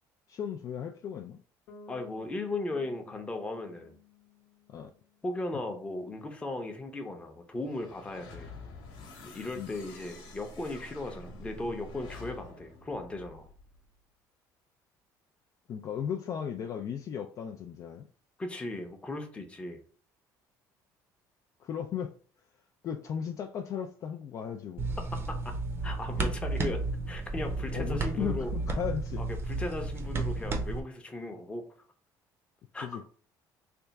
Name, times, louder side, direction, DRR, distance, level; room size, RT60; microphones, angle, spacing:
voice 1, 0.3-1.4 4.7-4.9 9.6-9.7 15.7-18.1 21.6-22.1 22.8-24.9 27.7-29.2 32.8-33.0, left 8 dB, 45° left, 0.3 m, -36 dB
Bass guitar, 1.7-5.5, left 4 dB, 70° left, 0.8 m, -55 dB
voice 2, 1.9-4.0 5.2-8.5 9.2-13.5 18.4-19.8 25.1-25.5 25.8-26.8 27.1-28.5 29.2-31.6 32.7-33.0, left 2 dB, 15° left, 0.7 m, -37 dB
sound 1, 7.6-13.8, left 2 dB, 90° left, 1.1 m, -48 dB
sound 2, 24.8-30.8, right 3 dB, 30° right, 0.6 m, -32 dB
3.3 x 2.4 x 4.0 m
cardioid pair, 135°, 8 cm